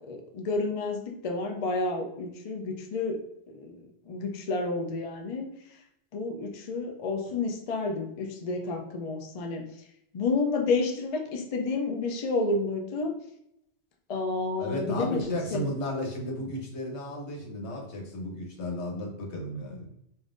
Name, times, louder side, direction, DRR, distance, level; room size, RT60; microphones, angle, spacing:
voice 1, 0.0-3.2 3.5-3.8 4.1-5.5 6.1-9.6 10.1-13.1 14.1-15.6, left 3 dB, 45° left, 3 dB, 0.5 m, -30 dB
voice 2, 14.6-19.9, left 1 dB, 75° left, 0 dB, 1.2 m, -34 dB
5.3 x 2.6 x 2.5 m, 0.77 s
omnidirectional pair, 1.2 m